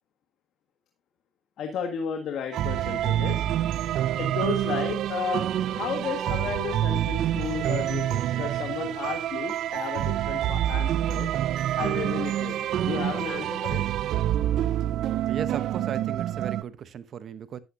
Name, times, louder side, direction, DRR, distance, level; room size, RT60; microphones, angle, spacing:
voice 1, 1.6-3.4 4.2-11.3 11.8-13.8, left 7 dB, 80° left, 1.6 m, -33 dB
sound 1, 2.5-16.6, right 12 dB, 80° right, 0.4 m, -27 dB
voice 2, 15.3-17.6, right 8 dB, 65° right, 0.8 m, -36 dB
12.0 x 9.5 x 2.6 m
cardioid pair, 90°, 0 cm